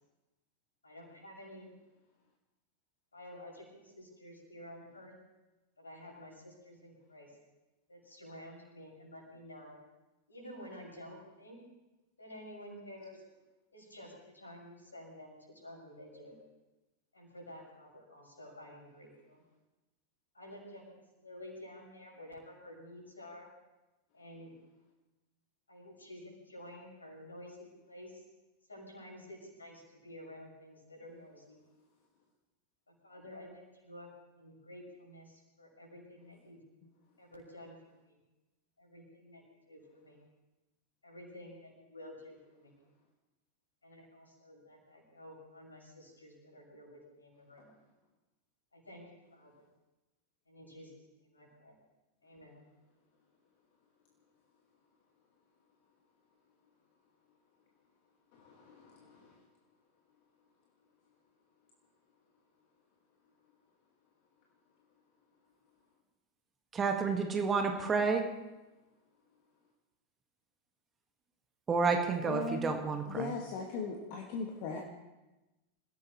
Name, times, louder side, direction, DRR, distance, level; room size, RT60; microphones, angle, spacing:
voice 1, 0.8-1.7 3.1-5.1 5.8-7.3 7.9-9.7 10.3-11.6 12.2-13.2 13.7-16.4 17.1-19.4 20.3-23.5 24.1-24.5 25.7-28.2 28.7-31.6 32.9-34.1 34.3-36.6 37.2-38.2 38.8-40.2 41.0-42.8 43.8-47.7 48.7-49.7 50.5-51.7 52.2-52.6, left 1 dB, 80° left, -2 dB, 6.5 m, -51 dB
voice 2, 66.7-68.3 71.7-73.3, right 4 dB, 20° right, 4 dB, 1.7 m, -30 dB
voice 3, 72.3-72.7 73.1-74.8, left 4 dB, 45° left, 0 dB, 1.9 m, -37 dB
27.0 x 16.5 x 3.2 m, 1.1 s
figure-of-eight pair, 90°, 0 cm